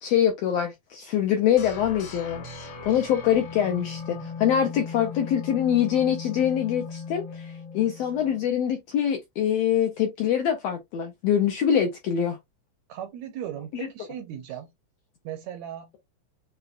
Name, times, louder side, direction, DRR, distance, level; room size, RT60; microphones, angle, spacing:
voice 1, 0.0-12.4, left 9 dB, 75° left, 1.5 m, -24 dB
sound 1, 1.6-8.5, left 5 dB, 60° left, 1.4 m, -38 dB
voice 2, 12.9-14.7 15.2-16.0, right 10 dB, 80° right, 1.7 m, -37 dB
6.8 x 2.3 x 2.5 m
omnidirectional pair, 3.6 m